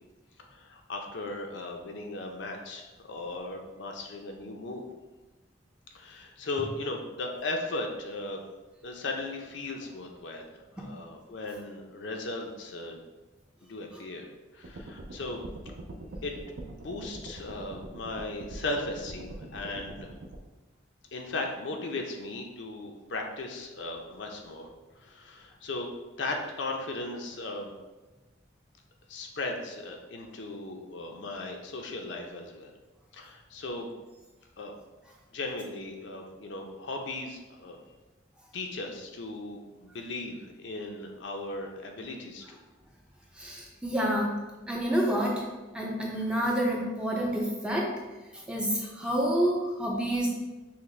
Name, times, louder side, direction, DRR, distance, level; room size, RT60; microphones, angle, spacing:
voice 1, 0.5-4.8 5.9-8.4 8.8-10.5 10.7-13.0 13.7-15.4 16.2-16.3 16.7-20.1 21.1-24.7 24.9-25.9 26.2-27.7 29.1-32.7 33.1-33.9 34.6-34.7 35.3-37.8 38.5-42.6, left 2 dB, 65° left, 2 dB, 0.5 m, -37 dB
sound 1, 14.6-20.4, right 1 dB, 60° right, 0.5 m, -43 dB
voice 2, 43.4-44.4 44.7-45.4 45.7-47.9 48.3-50.3, equal, 5° right, -2 dB, 0.5 m, -28 dB
5.7 x 2.1 x 3.1 m, 1.2 s
head